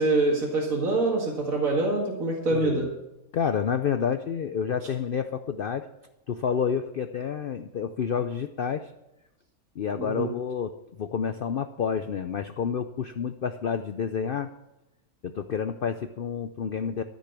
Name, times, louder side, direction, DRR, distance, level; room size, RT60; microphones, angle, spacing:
voice 1, 0.0-2.9 10.0-10.3, right 2 dB, 65° right, -3 dB, 2.5 m, -25 dB
voice 2, 2.5-2.9 3.3-5.9 6.3-8.9 9.8-10.7 11.0-14.5 15.2-17.0, left 7 dB, 65° left, 9 dB, 0.5 m, -29 dB
13.5 x 6.3 x 8.1 m, 0.95 s
omnidirectional pair, 1.6 m